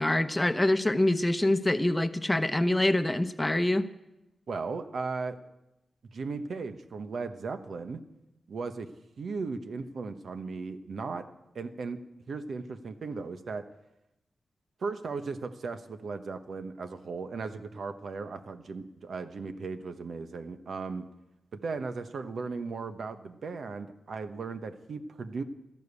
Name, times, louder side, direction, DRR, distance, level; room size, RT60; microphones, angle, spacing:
voice 1, 0.0-3.9, left 1 dB, 15° left, 10 dB, 0.9 m, -25 dB
voice 2, 4.5-5.4 6.1-8.0 8.5-8.9 9.2-11.3 11.5-12.0 12.3-13.6 14.8-21.0 21.5-25.4, right 4 dB, 70° right, 9 dB, 1.1 m, -36 dB
13.5 x 12.0 x 8.3 m, 0.91 s
cardioid pair, 85°, 0 cm